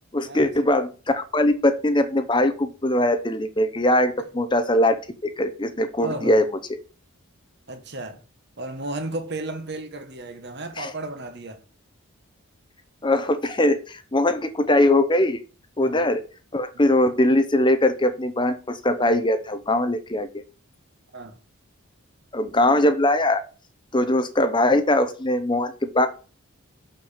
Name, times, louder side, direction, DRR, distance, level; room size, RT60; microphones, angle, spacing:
voice 1, 0.1-5.0 5.4-6.5 10.8-10.9 13.0-15.4 15.8-16.2 16.5-20.3 22.3-23.4 23.9-26.1, left 1 dB, 20° left, 0.7 m, -21 dB
voice 2, 6.0-6.4 7.7-8.2 8.6-11.6 15.8-16.0 16.7-16.9 21.1-21.4, right 2 dB, 50° right, 1.6 m, -34 dB
6.7 x 6.1 x 7.3 m
head